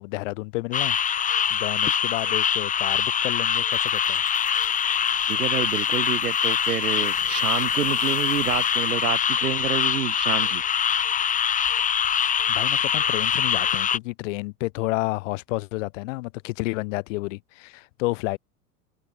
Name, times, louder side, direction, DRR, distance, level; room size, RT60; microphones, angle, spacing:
voice 1, 0.0-4.2 12.5-18.4, left 23 dB, 55° left, 3.7 m, -31 dB
sound 1, 0.7-14.0, left 8 dB, 15° left, 1.1 m, -24 dB
sound 2, 3.7-10.3, left 5 dB, 85° left, 8.0 m, -49 dB
voice 2, 5.2-10.6, right 9 dB, 75° right, 1.3 m, -28 dB
figure-of-eight pair, 90°, 45 cm